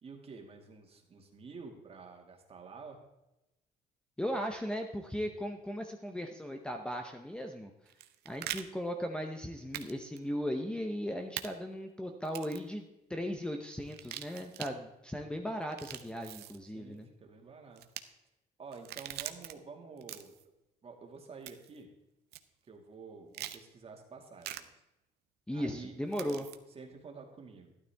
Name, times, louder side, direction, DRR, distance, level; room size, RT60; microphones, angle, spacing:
voice 1, 0.0-3.0 16.7-17.8 18.6-20.4 20.8-21.9 22.7-24.8 25.5-27.9, right 4 dB, 35° right, 2 dB, 2.2 m, -50 dB
voice 2, 4.2-7.7 8.2-17.1 25.5-26.5, equal, 5° left, 4 dB, 0.9 m, -37 dB
sound 1, 7.9-8.6 9.7-9.9 10.2-10.3 11.4-11.5 12.2-12.7 13.9-14.7 15.6-16.6 17.8-18.0 18.7-19.5 20.0-20.4 21.5-21.8 22.3-22.4 23.3-23.6 24.4-24.6 26.1-26.6, right 13 dB, 75° right, 0.7 m, -42 dB
12.0 x 11.5 x 3.5 m, 0.92 s
cardioid pair, 110°, 17 cm